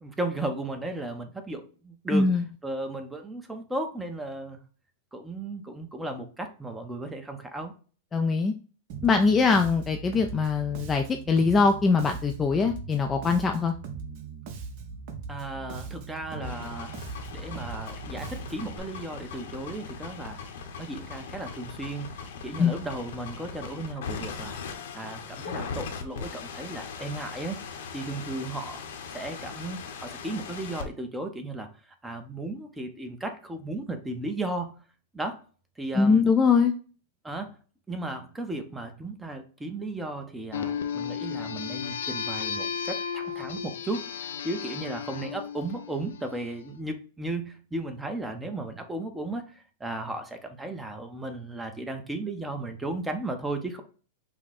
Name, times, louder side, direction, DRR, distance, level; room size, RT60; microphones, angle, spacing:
voice 1, 0.0-4.6 5.1-7.7 15.3-16.9 17.3-20.4 20.8-24.6 24.9-28.8 29.1-31.7 32.0-34.8 35.1-35.4 35.8-36.2 37.2-37.6 37.9-53.8, right 2 dB, 5° right, 6 dB, 0.7 m, -35 dB
voice 2, 2.1-2.4 8.1-8.5 9.0-13.7 22.6-22.7 36.0-36.7, left 4 dB, 15° left, 4 dB, 0.4 m, -22 dB
Bass guitar, 8.9-18.8, right 5 dB, 50° right, 1.0 m, -40 dB
sound 1, 16.3-30.8, left 5 dB, 70° left, 0.9 m, -39 dB
sound 2, 40.5-46.5, left 7 dB, 90° left, 0.6 m, -34 dB
5.8 x 2.2 x 4.1 m, 0.39 s
supercardioid pair, 145°, 0 cm